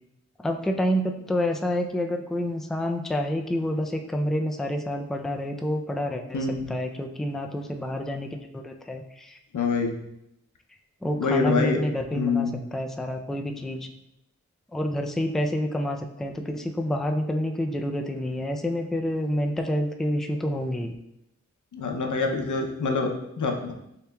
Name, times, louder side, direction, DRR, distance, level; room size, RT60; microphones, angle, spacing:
voice 1, 0.4-9.4 11.0-13.9 14.7-20.9, equal, ahead, 4 dB, 0.3 m, -28 dB
voice 2, 6.3-6.7 9.5-10.0 11.2-11.8 12.1-12.6 21.7-23.7, left 4 dB, 90° left, 3 dB, 0.6 m, -26 dB
6.7 x 3.0 x 2.2 m, 0.82 s
wide cardioid pair, 85°, 29 cm